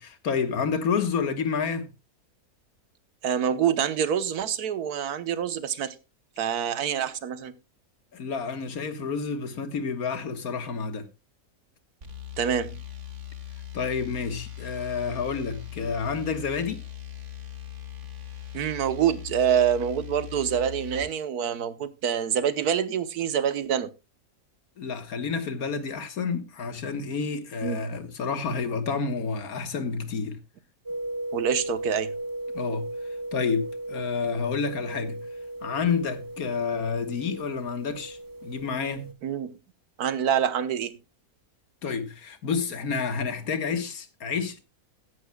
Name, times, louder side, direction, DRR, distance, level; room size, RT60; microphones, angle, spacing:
voice 1, 0.0-1.9 8.1-11.1 13.7-16.8 24.8-30.4 32.5-32.9 33.3-35.2 35.6-39.1 41.8-44.6, left 5 dB, 70° left, 1.8 m, -29 dB
voice 2, 3.2-5.9 6.4-7.5 12.4-12.8 18.5-23.9 27.6-27.8 31.3-32.1 39.2-39.5 40.0-41.0, right 8 dB, 80° right, 1.5 m, -26 dB
sound 1, 12.0-21.1, left 10 dB, 50° right, 2.0 m, -40 dB
sound 2, 30.9-39.1, right 1 dB, 20° right, 0.7 m, -36 dB
15.5 x 11.5 x 2.3 m
omnidirectional pair, 1.6 m